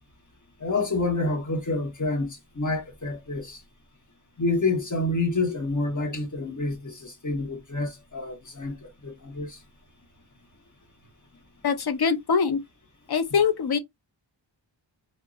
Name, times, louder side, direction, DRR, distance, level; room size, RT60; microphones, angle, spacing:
voice 1, 0.6-3.6 4.4-9.6, left 2 dB, 40° left, 1.1 m, -28 dB
voice 2, 11.6-12.6 13.1-13.8, left 6 dB, 55° left, 0.6 m, -23 dB
3.5 x 2.1 x 2.4 m
wide cardioid pair, 80°, 47 cm